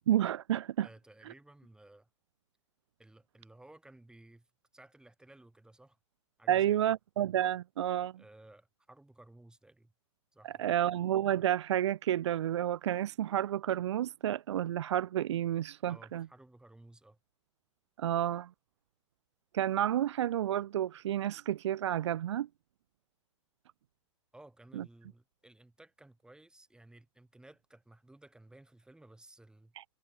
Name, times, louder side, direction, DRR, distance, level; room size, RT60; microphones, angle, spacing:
voice 1, 0.0-0.9 6.5-8.1 10.4-16.2 18.0-18.5 19.5-22.5 24.8-24.9 29.8-29.9, right 11 dB, 65° right, 0.4 m, -30 dB
voice 2, 0.8-2.1 3.0-4.5 4.7-6.0 6.4-6.9 8.2-9.9 10.3-10.8 15.9-17.2 24.3-29.7, right 2 dB, 5° right, 5.3 m, -57 dB
figure-of-eight pair, 95°, 16 cm